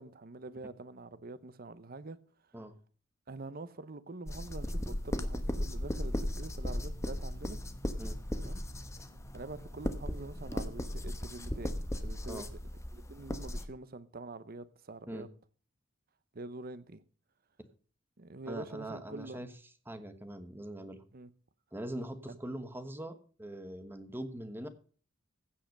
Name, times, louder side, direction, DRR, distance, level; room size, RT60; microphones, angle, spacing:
voice 1, 0.0-2.2 3.3-7.6 8.4-8.6 9.3-12.4 12.9-15.3 16.3-17.0 18.2-19.4 21.1-21.3 22.3-22.4, right 2 dB, 50° right, 0.8 m, -45 dB
sound 1, 4.3-13.7, left 1 dB, 15° left, 1.0 m, -36 dB
sound 2, 4.8-13.4, equal, 85° left, 2.6 m, -54 dB
voice 2, 18.5-19.5 19.9-21.0 21.7-24.7, right 1 dB, 10° right, 1.2 m, -42 dB
15.5 x 5.7 x 6.5 m
head